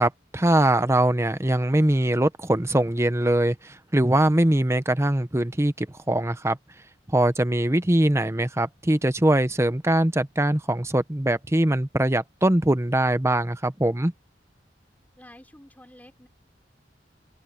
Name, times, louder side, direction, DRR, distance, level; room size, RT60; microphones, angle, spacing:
voice 1, 0.0-6.6 7.1-14.1, right 1 dB, 15° right, 0.9 m, -22 dB
voice 2, 15.2-16.3, left 1 dB, 10° left, 4.2 m, -49 dB
open air
head